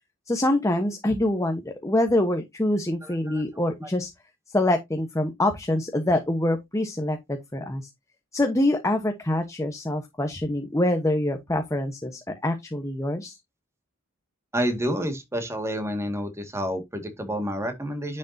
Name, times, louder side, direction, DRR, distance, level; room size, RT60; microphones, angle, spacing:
voice 1, 0.3-4.1 4.5-7.9 8.3-13.4, left 1 dB, 15° left, 1.1 m, -25 dB
voice 2, 3.0-3.4 14.5-18.2, equal, 15° right, 2.0 m, -29 dB
10.5 x 6.6 x 2.8 m
head